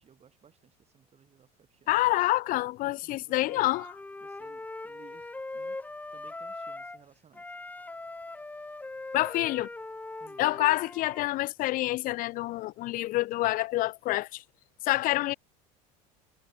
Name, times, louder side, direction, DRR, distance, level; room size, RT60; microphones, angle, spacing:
voice 1, 0.0-2.0 2.8-3.7 4.2-5.8 6.1-7.5 10.2-10.5, right 7 dB, 35° right, 3.9 m, -59 dB
voice 2, 1.9-3.9 9.1-9.7 10.4-14.4 14.8-15.3, left 18 dB, 45° left, 0.4 m, -27 dB
Wind instrument woodwind instrument, 3.4-7.0 7.3-11.3, left 2 dB, 10° left, 0.7 m, -41 dB
hypercardioid pair, 90°, 19 cm